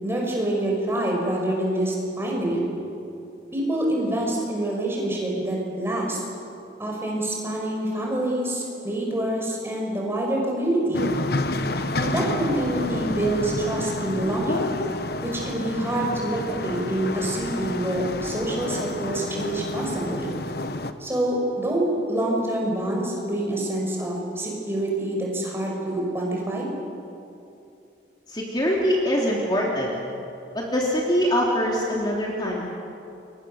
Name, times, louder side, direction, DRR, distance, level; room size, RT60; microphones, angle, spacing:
voice 1, 0.0-2.6 3.5-6.2 6.8-11.1 11.9-14.7 15.2-20.3 21.0-26.7, right 1 dB, 15° right, -2 dB, 5.8 m, -26 dB
sound 1, 10.9-20.9, left 2 dB, 60° left, 1.2 m, -30 dB
voice 2, 28.3-29.9 30.5-32.6, equal, 25° left, -3 dB, 3.0 m, -23 dB
29.5 x 24.0 x 7.0 m, 2.6 s
head